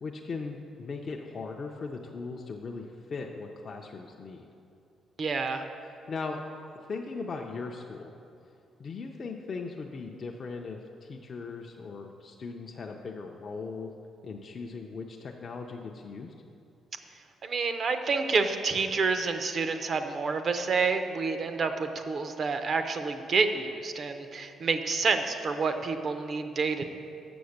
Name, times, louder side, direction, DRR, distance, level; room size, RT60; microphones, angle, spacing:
voice 1, 0.0-4.5 6.1-6.4 6.9-8.1 8.8-13.9 14.2-16.3, left 4 dB, 40° left, 1 dB, 0.5 m, -38 dB
voice 2, 5.2-5.6 17.4-26.8, right 4 dB, 45° right, 8 dB, 0.5 m, -28 dB
6.9 x 6.4 x 6.4 m, 2.6 s
cardioid pair, 130°, 0 cm